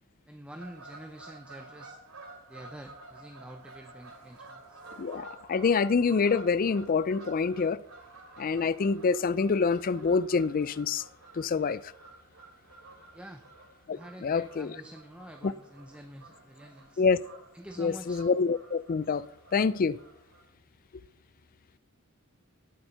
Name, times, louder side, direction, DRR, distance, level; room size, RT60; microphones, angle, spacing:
voice 1, 0.3-2.0 2.5-4.8 13.1-13.4 13.9-17.0 17.5-18.2, right 1 dB, 5° right, 0.6 m, -47 dB
Fowl / Bird vocalization bird call bird song, 0.6-20.5, right 3 dB, 65° right, 3.2 m, -51 dB
voice 2, 5.0-7.8 8.4-11.0 11.3-11.9 13.9-14.8 15.4-15.5 17.0-17.2 17.8-19.3 19.5-20.0, left 5 dB, 40° left, 0.4 m, -26 dB
17.5 x 7.2 x 5.7 m
head